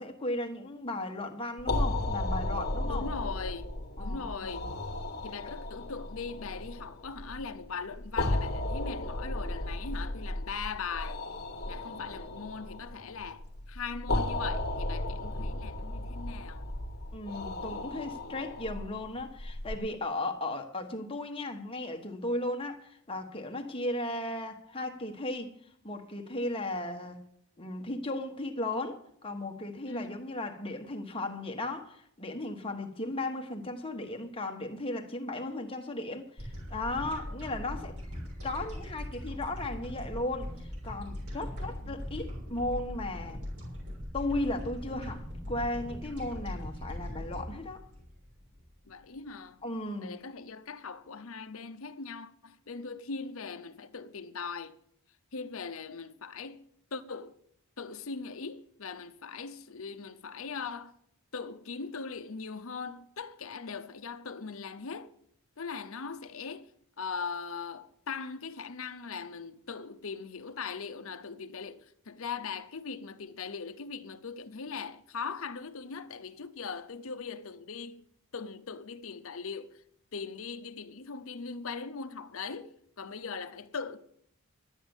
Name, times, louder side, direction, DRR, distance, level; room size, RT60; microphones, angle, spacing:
voice 1, 0.0-3.1 4.0-4.5 5.4-5.5 17.1-25.5 25.8-27.2 27.6-38.0 38.4-43.4 44.1-47.9 49.6-50.2, left 2 dB, 25° left, 1.3 m, -36 dB
sound 1, 1.6-19.8, left 1 dB, 45° left, 1.4 m, -35 dB
voice 2, 2.8-3.7 4.0-4.7 5.2-11.2 11.7-16.7 29.9-30.2 41.8-42.0 48.9-49.6 50.0-54.8 55.3-57.4 57.8-61.0 61.3-65.1 65.6-78.0 78.3-79.8 80.1-84.0, left 5 dB, 65° left, 0.7 m, -40 dB
sound 2, 36.4-48.9, equal, 80° right, 6.7 m, -40 dB
12.0 x 9.1 x 7.1 m
head